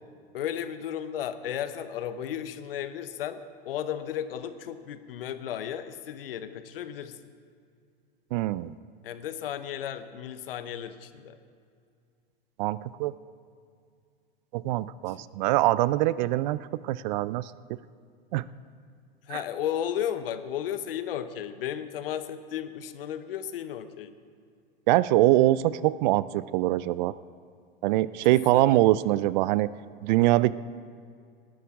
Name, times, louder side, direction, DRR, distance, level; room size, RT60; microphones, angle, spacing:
voice 1, 0.3-7.3 9.0-11.4 15.1-15.2 19.2-24.1 28.5-28.8, left 10 dB, 70° left, 11 dB, 0.9 m, -34 dB
voice 2, 8.3-8.7 12.6-13.1 14.5-16.6 16.8-17.5 18.3-18.4 19.3-19.4 24.9-27.1 27.8-29.7 30.0-30.5, right 16 dB, 50° right, 18 dB, 0.4 m, -23 dB
19.0 x 11.0 x 3.7 m, 2.2 s
hypercardioid pair, 95°, 29 cm